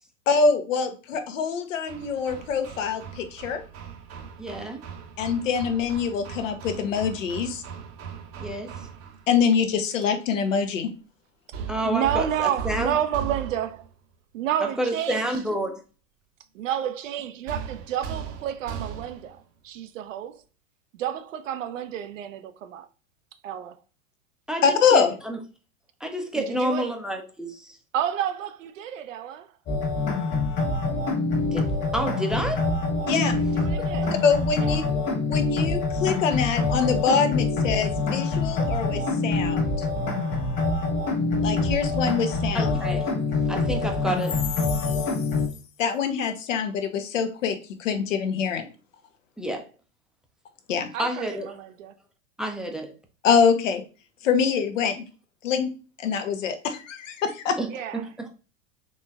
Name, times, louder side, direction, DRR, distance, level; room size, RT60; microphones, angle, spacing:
voice 1, 0.3-3.6 5.2-7.6 9.3-10.9 24.6-25.1 33.1-33.3 34.2-34.8 35.3-39.9 41.4-42.8 44.8-44.9 45.8-48.7 50.7-50.9 53.2-53.8 54.2-55.0 55.4-55.7 56.0-57.6, left 6 dB, 80° left, 0.8 m, -24 dB
Hammer, 1.9-9.3 11.5-13.9 17.5-19.4, right 7 dB, 40° right, 0.7 m, -38 dB
voice 2, 4.4-4.8 8.4-8.7 11.7-12.9 14.8-15.8 24.5-25.4 26.0-27.7 31.5-32.7 33.1-33.3 34.0-34.1 42.5-43.1 43.5-44.4 49.4-49.7 51.0-51.5 52.4-52.9 57.6-57.7 58.2-58.3, right 1 dB, ahead, 0.5 m, -29 dB
voice 3, 11.8-13.9 14.3-15.4 16.5-20.3 20.9-22.9 23.4-23.8 26.3-26.9 27.9-29.5 33.1-34.1 34.6-34.8 50.9-51.9 57.7-58.0, right 10 dB, 80° right, 0.6 m, -30 dB
sound 1, 29.7-45.5, left 3 dB, 30° left, 1.3 m, -25 dB
4.1 x 3.1 x 2.4 m
hypercardioid pair, 100°, 38 cm